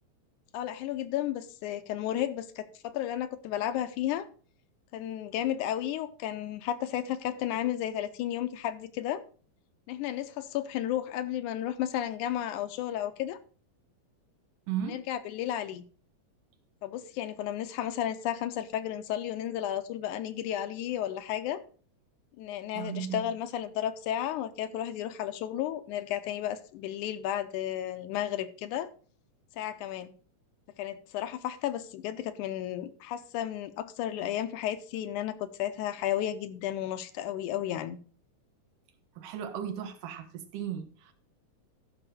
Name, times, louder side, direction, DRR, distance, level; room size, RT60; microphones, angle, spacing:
voice 1, 0.5-4.3 4.9-9.2 9.9-13.4 14.8-15.9 16.8-21.6 22.4-28.9 29.6-30.1 30.8-38.0, left 11 dB, 80° left, 2.1 m, -33 dB
voice 2, 14.7-15.0 22.7-23.3 39.2-41.1, right 9 dB, 85° right, 2.8 m, -36 dB
13.5 x 5.8 x 4.2 m
omnidirectional pair, 3.7 m